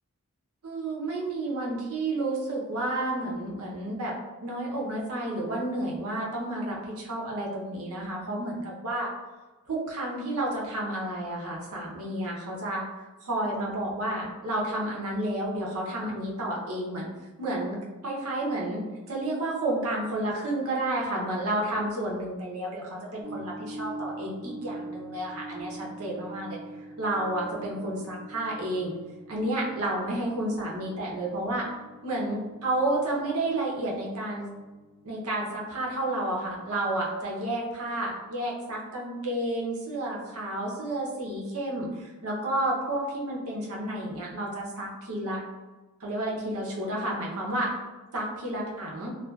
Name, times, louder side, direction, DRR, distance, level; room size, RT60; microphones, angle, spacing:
voice 1, 0.6-4.1 4.4-9.1 9.7-12.8 13.2-17.1 17.4-17.8 18.0-18.8 19.1-26.6 27.0-28.9 29.3-31.7 32.0-34.5 35.0-45.4 46.0-47.7 48.1-49.1, right 1 dB, 70° right, -3 dB, 0.7 m, -31 dB
sound 1, 23.2-36.9, right 2 dB, 25° right, 0.8 m, -44 dB
2.6 x 2.3 x 2.2 m, 1.2 s
head